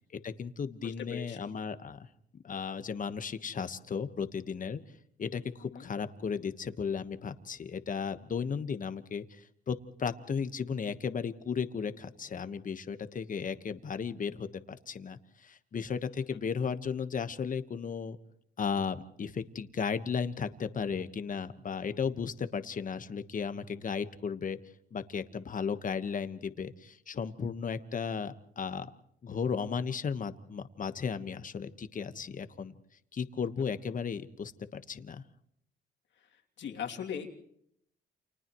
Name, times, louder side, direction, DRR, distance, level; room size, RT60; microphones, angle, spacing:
voice 1, 0.1-2.1 2.4-4.8 5.2-18.2 18.6-24.6 24.9-28.9 29.2-32.7 33.1-35.2, left 6 dB, 40° left, 10 dB, 1.4 m, -35 dB
voice 2, 0.8-1.4 5.7-5.9 16.3-16.4 36.2-37.3, left 8 dB, 65° left, 1 dB, 2.8 m, -40 dB
30.0 x 28.0 x 3.1 m, 0.69 s
cardioid pair, 90°, 20 cm